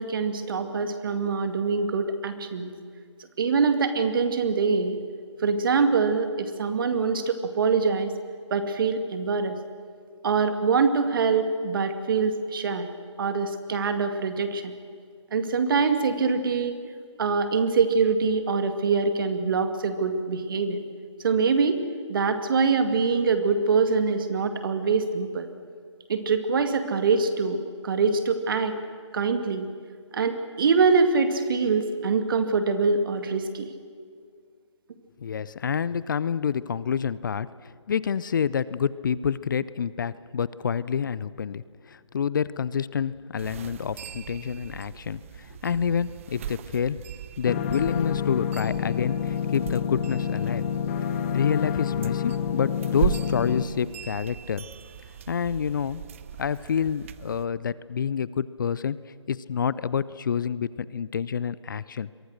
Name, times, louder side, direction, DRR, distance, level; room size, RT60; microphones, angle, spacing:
voice 1, 0.0-2.7 3.4-5.0 5.4-8.1 8.5-9.6 10.2-12.9 13.2-14.7 15.3-16.8 17.2-20.8 21.2-21.8 22.1-25.5 26.1-28.7 29.1-29.7 30.1-33.7, right 4 dB, 45° right, 8 dB, 2.3 m, -24 dB
voice 2, 35.2-47.0 47.4-50.6 51.3-54.6 55.3-56.0 56.4-59.0 59.3-62.1, left 7 dB, 40° left, 18 dB, 0.6 m, -28 dB
sound 1, 43.4-57.5, right 10 dB, 25° right, 0.7 m, -38 dB
sound 2, 47.5-53.6, left 8 dB, 25° left, 1.1 m, -28 dB
28.0 x 23.0 x 6.5 m, 2.1 s
figure-of-eight pair, 150°, 16 cm